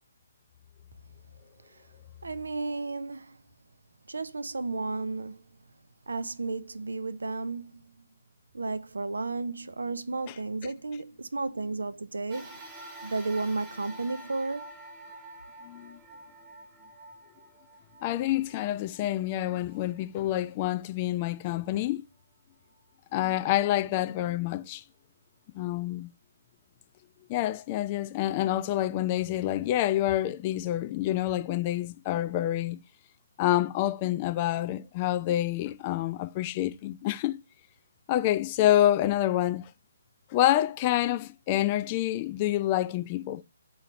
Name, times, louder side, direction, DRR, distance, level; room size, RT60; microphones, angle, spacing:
voice 1, 2.2-3.4 4.1-5.4 6.1-7.9 8.5-12.6 13.0-14.7, right 3 dB, 75° right, 0.4 m, -33 dB
sound 1, 12.3-20.9 21.5-21.6 22.7-22.8, right 2 dB, 15° right, 1.0 m, -48 dB
voice 2, 15.7-16.0 18.0-22.0 23.1-24.8 25.5-26.1 27.3-32.8 33.4-37.4 38.1-39.7 40.3-43.4, left 13 dB, 30° left, 0.4 m, -27 dB
3.8 x 2.8 x 4.3 m
figure-of-eight pair, 140°, 0 cm